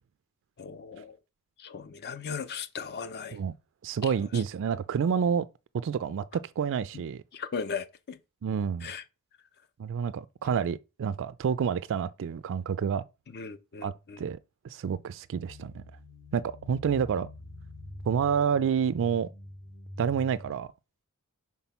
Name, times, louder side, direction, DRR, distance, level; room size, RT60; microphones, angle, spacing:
voice 1, 0.6-1.2 1.6-3.4 4.0-4.4 7.3-8.2 8.8-9.0 13.3-14.2, left 6 dB, 50° left, 0.5 m, -37 dB
voice 2, 3.8-5.5 5.7-7.2 8.4-8.9 9.8-13.0 13.8-14.4 14.6-15.8 16.3-17.3 18.1-19.3 20.0-20.7, right 7 dB, 60° right, 0.3 m, -29 dB
Distant zebra A, 15.5-20.5, left 1 dB, 85° left, 2.8 m, -45 dB
6.0 x 3.6 x 5.7 m
head